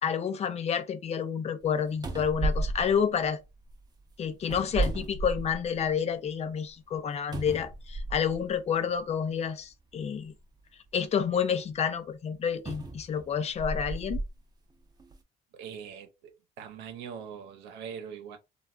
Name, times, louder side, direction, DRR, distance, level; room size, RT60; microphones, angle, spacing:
voice 1, 0.0-3.4 4.2-10.3 10.9-14.2, left 7 dB, 40° left, 0.5 m, -29 dB
sound 1, 1.6-1.7 2.0-3.7 4.4-5.8 6.3-6.4 7.3-8.4 9.4-9.5 12.6-14.3 15.0-15.1, right 2 dB, 25° right, 0.7 m, -33 dB
voice 2, 15.5-18.4, right 7 dB, 90° right, 0.8 m, -42 dB
3.2 x 2.4 x 2.4 m
cardioid pair, 110°, 17 cm